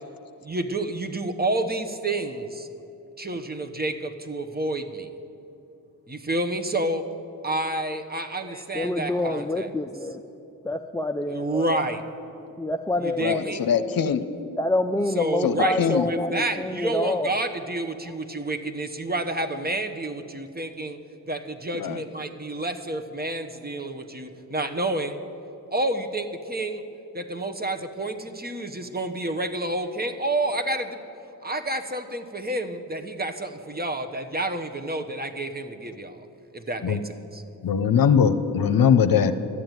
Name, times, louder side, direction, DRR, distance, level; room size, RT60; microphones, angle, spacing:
voice 1, 0.4-2.7 3.2-5.1 6.1-7.1 7.4-9.7 11.3-12.0 13.0-13.6 15.1-21.0 21.3-25.2 25.7-26.8 27.1-31.0 31.4-36.3 36.5-37.4, right 2 dB, 25° right, 7 dB, 1.1 m, -29 dB
voice 2, 8.5-10.2 10.6-12.0 12.6-14.1 14.6-17.4, left 1 dB, 10° left, 4 dB, 0.5 m, -27 dB
voice 3, 13.2-14.3 15.4-16.1 21.7-22.0 36.8-37.0 37.6-39.3, left 7 dB, 65° left, 11 dB, 0.8 m, -21 dB
13.0 x 7.7 x 9.1 m, 2.9 s
cardioid pair, 60°, 37 cm